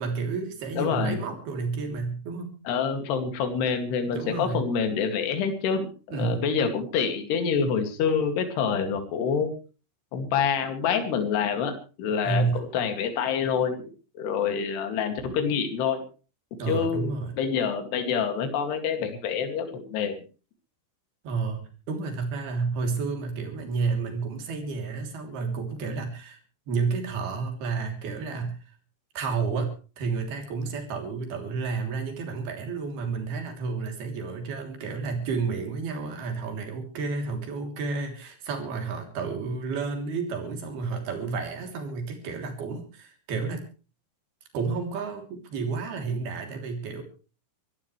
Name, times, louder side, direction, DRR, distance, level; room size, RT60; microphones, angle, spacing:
voice 1, 0.0-2.6 4.1-4.6 6.1-6.5 12.2-12.6 16.6-17.3 21.2-26.4 26.7-28.6 29.1-43.6 44.5-47.0, right 4 dB, 55° right, 4 dB, 4.9 m, -31 dB
voice 2, 0.8-1.2 2.7-9.5 10.1-11.7 12.0-13.8 14.2-16.0 16.7-20.1, left 6 dB, 60° left, 6 dB, 4.2 m, -27 dB
25.0 x 14.0 x 3.3 m, 0.35 s
omnidirectional pair, 5.5 m